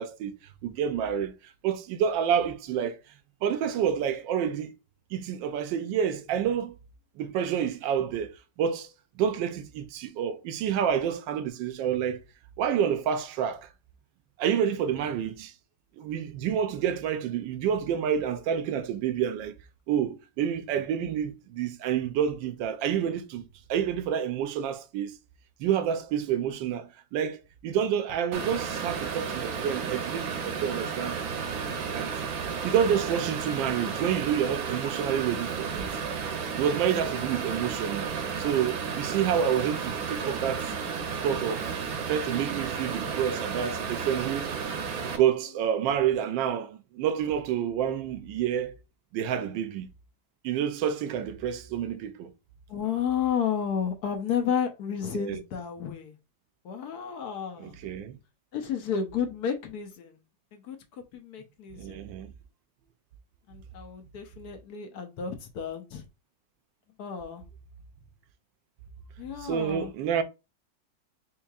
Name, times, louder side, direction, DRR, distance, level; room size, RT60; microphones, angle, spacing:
voice 1, 0.0-1.3 1.6-3.0 3.4-4.7 5.1-6.7 7.2-8.3 8.6-8.9 9.2-12.2 12.6-13.7 14.4-15.5 16.0-19.6 19.9-25.2 25.6-31.2 31.9-32.1 32.6-35.9 36.6-40.7 41.2-41.7 42.1-44.5 45.1-48.7 49.1-49.9 50.4-52.3 55.1-55.4 57.6-58.2 61.7-62.3 69.4-70.2, right 8 dB, 85° right, 1.3 m, -28 dB
sound 1, 28.3-45.2, right 6 dB, 65° right, 1.0 m, -33 dB
voice 2, 52.7-56.1 56.6-57.8 58.5-60.2 60.5-62.0 63.5-66.0 67.0-67.4 69.2-69.9, left 8 dB, 70° left, 1.1 m, -32 dB
4.4 x 3.1 x 2.3 m
omnidirectional pair, 2.0 m